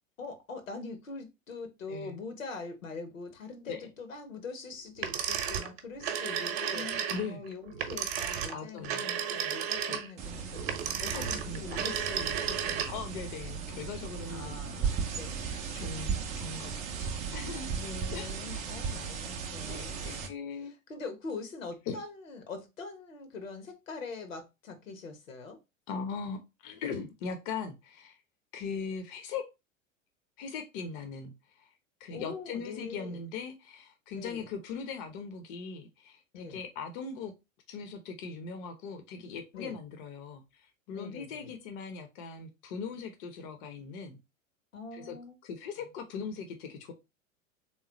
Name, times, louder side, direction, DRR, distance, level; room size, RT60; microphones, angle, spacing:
voice 1, 0.2-10.7 11.0-13.0 14.3-15.4 17.7-20.2 20.9-25.6 32.1-33.2 34.1-34.4 36.3-36.6 39.5-39.8 40.9-41.5 44.7-45.4, left 4 dB, 70° left, 1.1 m, -43 dB
voice 2, 1.9-2.2 3.7-3.8 6.7-7.4 8.5-9.1 9.9-10.0 11.1-11.8 12.9-14.9 15.4-17.8 18.1-18.3 18.5-18.9 19.7-20.7 21.9-22.0 25.9-28.2 28.5-29.4 30.4-31.7 32.0-37.3 37.7-44.2 44.9-45.2 45.4-46.9, left 5 dB, 35° left, 0.6 m, -40 dB
sound 1, 5.0-13.1, right 8 dB, 50° right, 0.8 m, -33 dB
sound 2, 10.2-20.3, right 6 dB, 20° right, 0.4 m, -36 dB
3.5 x 3.1 x 2.8 m
figure-of-eight pair, 90°, 40 cm